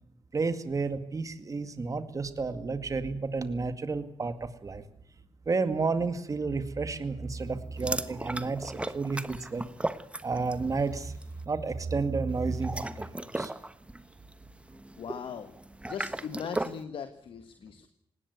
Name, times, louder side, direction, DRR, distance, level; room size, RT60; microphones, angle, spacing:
voice 1, 0.3-4.8 5.5-9.6 10.2-11.1 11.5-13.5, right 4 dB, 40° right, 10 dB, 2.1 m, -31 dB
sound 1, 7.8-10.7 11.0-11.3 12.5-16.8, right 1 dB, 15° right, 1.2 m, -36 dB
voice 2, 15.0-15.5 15.9-17.9, left 7 dB, 75° left, 9 dB, 1.6 m, -39 dB
19.0 x 18.0 x 9.5 m, 0.70 s
cardioid pair, 85°, 9 cm